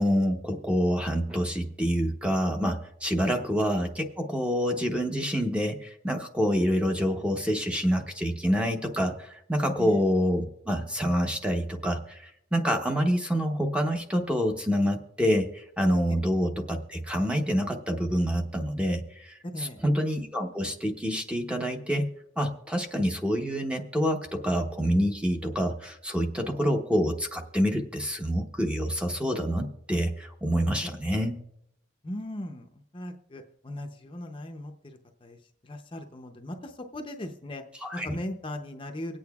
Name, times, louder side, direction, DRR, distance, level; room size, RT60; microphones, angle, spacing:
voice 1, 0.0-22.1 22.4-31.3 37.8-38.2, equal, 5° right, 3 dB, 0.8 m, -27 dB
voice 2, 19.5-19.8 30.8-30.9 32.0-35.4 35.6-37.6 37.9-39.2, left 1 dB, 25° left, 4 dB, 0.6 m, -38 dB
24.5 x 8.6 x 2.3 m, 0.76 s
head